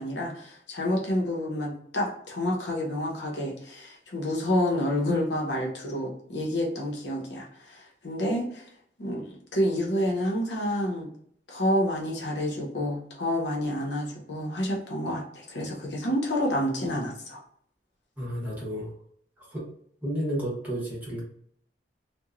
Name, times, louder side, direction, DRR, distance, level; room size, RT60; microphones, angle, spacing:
voice 1, 0.0-8.7 9.0-11.1 11.5-17.4, left 1 dB, 75° left, -2 dB, 0.8 m, -29 dB
voice 2, 18.2-18.9 19.5-19.6 20.0-21.2, equal, 10° right, -6 dB, 1.2 m, -31 dB
2.9 x 2.2 x 2.4 m, 0.66 s
head